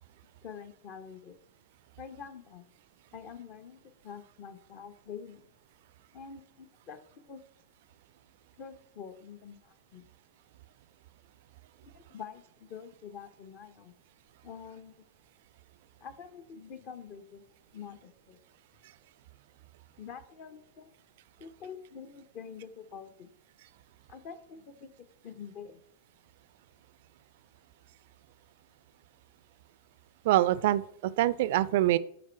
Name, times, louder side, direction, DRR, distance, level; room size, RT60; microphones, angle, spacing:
voice 1, 0.4-1.4 2.0-2.6 3.1-5.4 6.1-7.0 7.3-7.4 8.6-10.1 11.8-13.9 14.4-15.1 16.0-17.4 17.7-18.4 20.0-20.9 21.4-23.3 24.1-24.9 25.2-25.8, left 7 dB, 40° left, 11 dB, 0.8 m, -46 dB
voice 2, 30.2-32.0, right 14 dB, 55° right, 18 dB, 0.4 m, -25 dB
11.5 x 4.3 x 4.4 m, 0.70 s
figure-of-eight pair, 90°, 0 cm